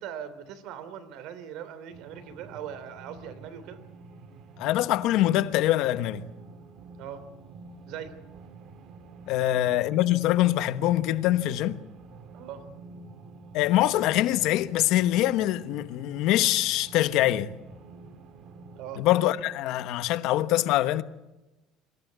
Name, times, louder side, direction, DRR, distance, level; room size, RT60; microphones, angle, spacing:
voice 1, 0.0-3.8 7.0-7.2 7.9-8.2 9.4-9.6 12.3-12.6 18.7-19.0, right 9 dB, 65° right, 2.9 m, -40 dB
sound 1, 1.9-19.0, right 4 dB, 50° right, 2.0 m, -48 dB
voice 2, 4.6-6.2 9.3-11.8 13.5-17.5 19.0-21.0, left 14 dB, 65° left, 1.1 m, -24 dB
24.5 x 15.0 x 9.3 m
cardioid pair, 150°, 0 cm